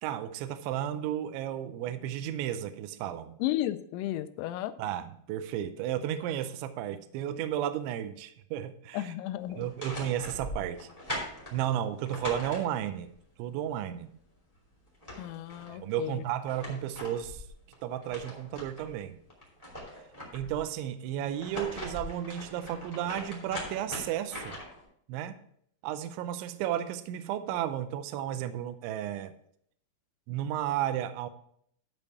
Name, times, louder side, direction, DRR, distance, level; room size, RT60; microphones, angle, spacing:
voice 1, 0.0-3.4 4.8-9.1 9.5-10.9 11.5-13.1 13.4-14.2 15.7-17.4 17.8-19.2 20.3-24.6 25.1-25.4 25.8-29.3 30.3-31.3, right 11 dB, 85° right, 10 dB, 2.7 m, -33 dB
voice 2, 3.4-4.7 8.9-9.7 15.2-16.2, left 14 dB, 85° left, 12 dB, 3.3 m, -33 dB
sound 1, 9.6-13.1 14.5-14.6 14.9-15.7 16.2-18.9 19.3-20.6 21.2-24.8, left 1 dB, 20° left, 0.9 m, -41 dB
12.5 x 5.5 x 4.6 m, 0.67 s
omnidirectional pair, 6.0 m